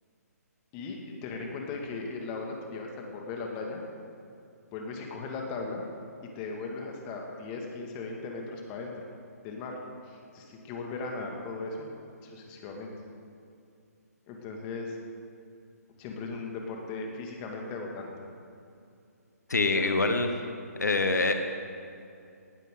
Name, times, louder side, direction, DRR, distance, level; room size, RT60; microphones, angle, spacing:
voice 1, 0.7-3.8 4.7-5.8 6.4-9.0 9.4-9.8 10.1-11.9 12.2-12.9 14.3-15.0 16.0-18.1 19.7-20.1, left 3 dB, 25° left, 1 dB, 2.0 m, -37 dB
voice 2, 19.5-20.3 20.8-21.4, left 3 dB, 90° left, 6 dB, 1.2 m, -25 dB
19.0 x 12.0 x 3.8 m, 2.6 s
hypercardioid pair, 150°, 9 cm